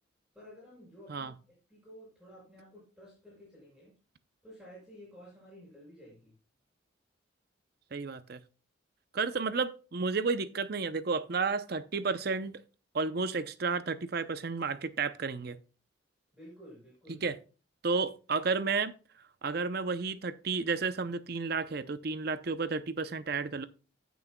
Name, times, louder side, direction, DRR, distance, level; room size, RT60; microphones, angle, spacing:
voice 1, 0.3-3.9 4.4-6.3 16.3-17.2, equal, ahead, 5.3 m, -53 dB
voice 2, 7.9-8.4 9.1-12.6 12.9-15.6 17.1-17.3 17.8-18.9 19.4-23.7, right 4 dB, 50° right, 0.6 m, -32 dB
16.0 x 6.2 x 2.2 m
head